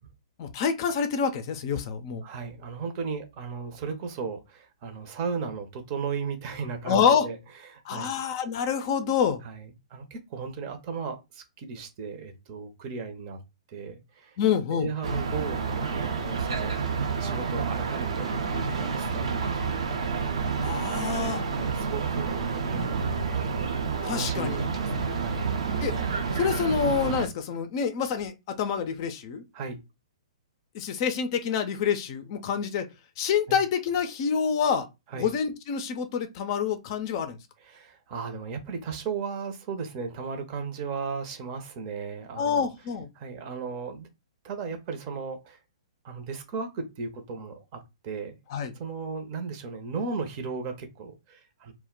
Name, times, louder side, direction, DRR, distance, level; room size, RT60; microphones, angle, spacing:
voice 1, 0.4-2.2 6.8-7.3 7.8-9.4 14.4-14.9 20.6-21.4 24.0-24.6 25.8-25.9 26.3-29.4 30.7-32.9 33.2-34.9 35.1-37.4 42.4-43.1 48.5-48.7, left 7 dB, 45° left, 0.5 m, -27 dB
voice 2, 2.2-7.4 7.7-8.1 9.4-13.4 13.7-14.4 14.7-16.8 17.2-18.3 18.8-19.8 20.9-21.1 21.4-23.7 24.0-25.5 29.5-29.8 33.5-33.6 35.1-35.3 37.6-42.7 43.2-44.1 44.4-45.6 46.0-48.4 48.7-51.7, right 5 dB, 40° right, 0.7 m, -36 dB
sound 1, 15.0-27.3, right 5 dB, 70° right, 0.7 m, -29 dB
2.2 x 2.1 x 3.7 m
hypercardioid pair, 130°, 3 cm